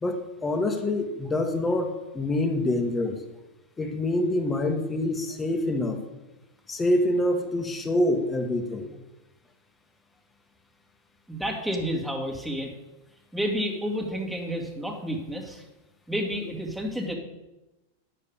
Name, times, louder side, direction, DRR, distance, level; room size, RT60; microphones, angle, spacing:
voice 1, 0.0-3.2 3.8-6.0 6.7-8.9, left 1 dB, 15° left, 5 dB, 1.5 m, -26 dB
voice 2, 11.3-12.7 13.3-15.6 16.1-17.1, equal, 5° right, 0 dB, 2.1 m, -30 dB
9.6 x 6.6 x 7.1 m, 1.0 s
hypercardioid pair, 125°, 0 cm